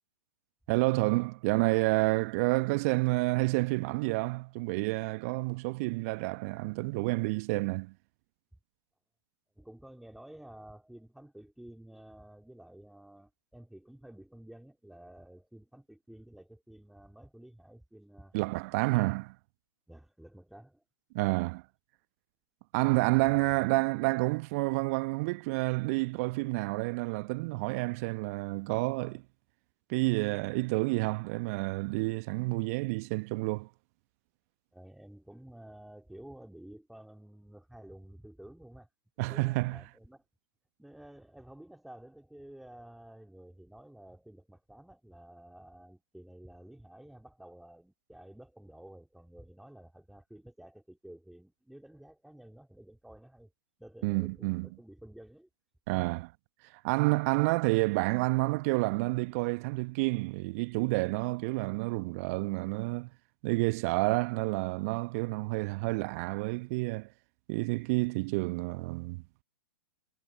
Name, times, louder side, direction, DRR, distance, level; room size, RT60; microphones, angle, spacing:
voice 1, 0.7-7.9 18.3-19.3 21.1-21.6 22.7-29.2 29.9-33.7 39.2-39.8 54.0-54.7 55.9-56.3 56.7-63.1 63.4-67.1 67.5-69.4, right 25 dB, 40° right, 1.2 m, -29 dB
voice 2, 9.6-18.4 19.9-20.8 34.7-38.9 39.2-40.2 40.8-53.5 53.8-55.5, right 1 dB, ahead, 3.8 m, -52 dB
figure-of-eight pair, 110°, 13 cm